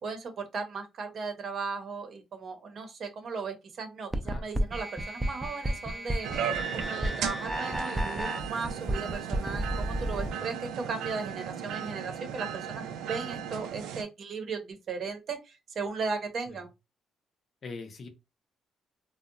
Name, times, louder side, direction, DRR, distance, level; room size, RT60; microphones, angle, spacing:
voice 1, 0.0-6.3 6.7-16.7, right 4 dB, 55° right, 0.6 m, -36 dB
sound 1, 4.1-10.3, right 1 dB, 10° right, 0.4 m, -32 dB
sound 2, 6.2-14.0, right 9 dB, 90° right, 0.3 m, -36 dB
voice 2, 10.3-10.6 16.5-16.6 17.6-18.1, left 3 dB, 50° left, 0.6 m, -43 dB
2.7 x 2.0 x 2.5 m
cardioid pair, 90°, 0 cm